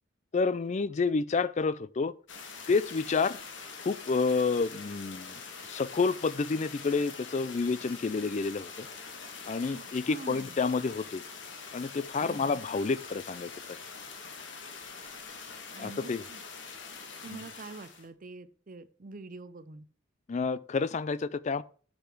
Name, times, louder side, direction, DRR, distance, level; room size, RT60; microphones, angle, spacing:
voice 1, 0.3-2.1 2.7-3.4 3.8-5.4 5.7-8.9 9.5-11.2 11.7-13.8 15.8-16.2 17.3-17.4 20.3-21.6, left 4 dB, 40° left, 0.4 m, -29 dB
sound 1, 2.3-18.1, left 5 dB, 75° left, 1.7 m, -44 dB
voice 2, 9.7-10.6 12.2-12.6 15.7-16.4 17.2-19.9, right 3 dB, 45° right, 0.7 m, -46 dB
7.8 x 6.9 x 4.5 m
head